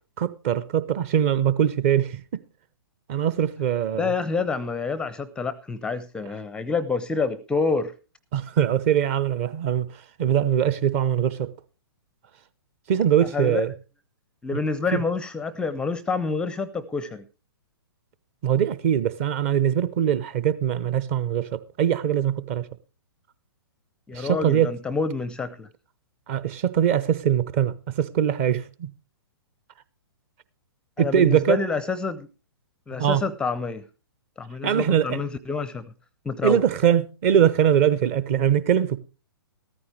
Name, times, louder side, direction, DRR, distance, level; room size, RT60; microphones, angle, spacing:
voice 1, 0.2-2.4 3.1-4.1 8.3-11.5 12.9-13.7 14.9-15.0 18.4-22.7 24.1-24.7 26.3-28.9 31.0-31.6 33.0-33.2 34.6-35.2 36.4-39.0, right 9 dB, 35° right, 0.8 m, -22 dB
voice 2, 4.0-7.9 13.3-13.7 14.4-17.2 24.1-25.7 31.0-32.3 32.9-33.8 34.4-35.9 36.3-36.6, left 4 dB, 5° left, 0.5 m, -27 dB
14.0 x 14.0 x 3.2 m
figure-of-eight pair, 120°, 13 cm